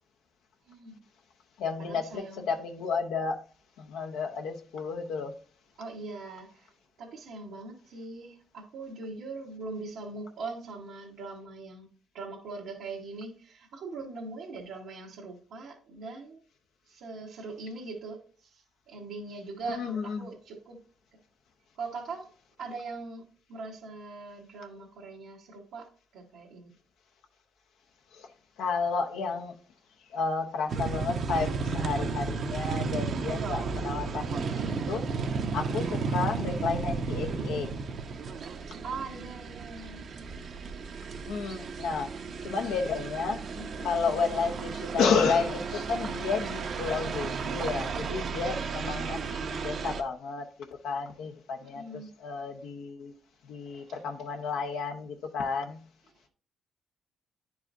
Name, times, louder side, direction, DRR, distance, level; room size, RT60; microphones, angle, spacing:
voice 1, 0.7-1.0 1.8-2.5 5.8-6.7 7.0-11.9 12.1-16.4 16.9-20.8 21.7-22.3 22.6-25.9 26.1-26.7 38.6-40.1 51.6-52.1 53.6-54.0, right 3 dB, 85° right, 1.2 m, -41 dB
voice 2, 1.6-3.4 3.8-5.3 19.7-20.2 28.2-28.3 28.6-29.5 30.1-35.0 35.5-37.7 41.3-42.1 42.4-50.5 50.8-53.1 53.5-55.8, left 5 dB, 90° left, 0.6 m, -31 dB
sound 1, 30.7-50.0, right 5 dB, 55° right, 0.6 m, -33 dB
9.9 x 4.7 x 2.6 m
cardioid pair, 90°, 0 cm